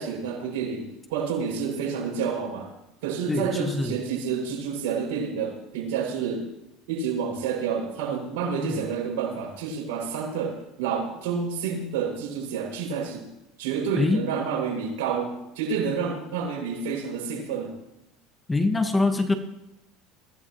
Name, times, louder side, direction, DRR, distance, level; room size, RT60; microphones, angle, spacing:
voice 1, 0.0-2.7 3.0-6.5 6.9-13.3 13.6-17.8, right 6 dB, 85° right, -1 dB, 7.0 m, -29 dB
voice 2, 3.3-4.0 8.6-8.7 13.9-14.2 18.5-19.3, left 2 dB, 10° left, 6 dB, 1.6 m, -24 dB
23.0 x 16.5 x 3.2 m, 0.91 s
supercardioid pair, 120°, 0 cm